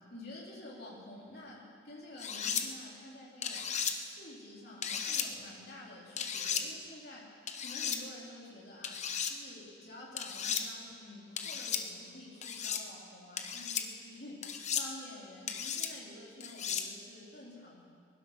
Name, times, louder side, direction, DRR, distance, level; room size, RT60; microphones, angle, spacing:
voice 1, 0.1-3.7 4.0-9.0 9.3-17.8, left 1 dB, 55° left, -5 dB, 3.8 m, -50 dB
sound 1, 2.2-2.6 3.4-3.9 4.8-5.3 6.2-6.6 7.5-8.0 8.8-9.3 10.2-10.6 11.4-11.8 12.4-12.8 13.4-13.8 14.4-14.9 15.5-15.9 16.4-16.9, left 7 dB, 35° left, 0.9 m, -35 dB
21.0 x 11.5 x 5.8 m, 2.2 s
head